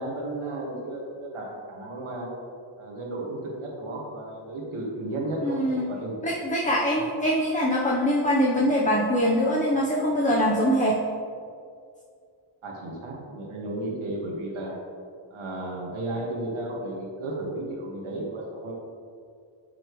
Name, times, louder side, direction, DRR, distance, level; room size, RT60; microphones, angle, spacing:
voice 1, 0.0-2.3 2.8-6.4 6.9-7.1 12.6-14.8 15.3-18.7, right 1 dB, 80° right, -2 dB, 1.9 m, -34 dB
voice 2, 5.4-5.9 6.2-11.0, equal, 15° left, -3 dB, 0.9 m, -23 dB
9.6 x 6.2 x 3.2 m, 2.3 s
wide cardioid pair, 100°, 48 cm